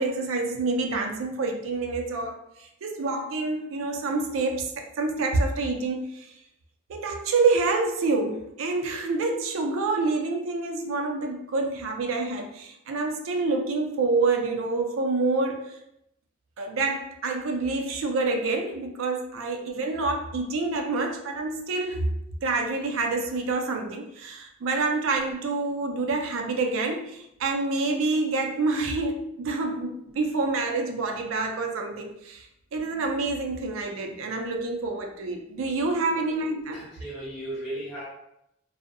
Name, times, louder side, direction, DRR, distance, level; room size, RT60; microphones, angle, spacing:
voice 1, 0.0-6.3 6.9-15.8 16.6-32.5 32.7-36.8, right 3 dB, 75° right, 3 dB, 0.4 m, -27 dB
voice 2, 36.7-38.1, right 1 dB, 45° left, -8 dB, 1.3 m, -36 dB
2.6 x 2.0 x 2.5 m, 0.79 s
head